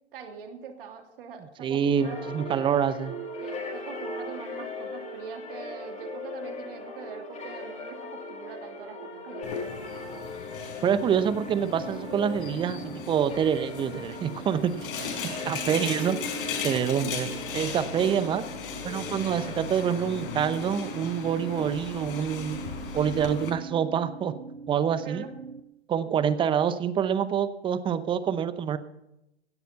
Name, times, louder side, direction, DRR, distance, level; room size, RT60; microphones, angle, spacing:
voice 1, 0.1-2.4 3.4-10.0 16.8-17.2 25.0-25.3 26.0-26.2, right 6 dB, 55° right, 4 dB, 2.9 m, -43 dB
voice 2, 1.6-3.2 10.8-16.2 16.6-17.3 17.5-18.4 18.8-22.6 22.9-24.3 24.7-25.3 25.9-28.8, right 8 dB, 15° right, 14 dB, 0.8 m, -26 dB
sound 1, 2.0-20.0, left 2 dB, 20° left, 4.7 m, -40 dB
sound 2, 9.4-23.5, left 6 dB, 55° left, 4.2 m, -37 dB
sound 3, 11.0-25.6, right 4 dB, 75° right, 1.2 m, -42 dB
17.0 x 13.0 x 4.1 m, 0.87 s
figure-of-eight pair, 115°, 33 cm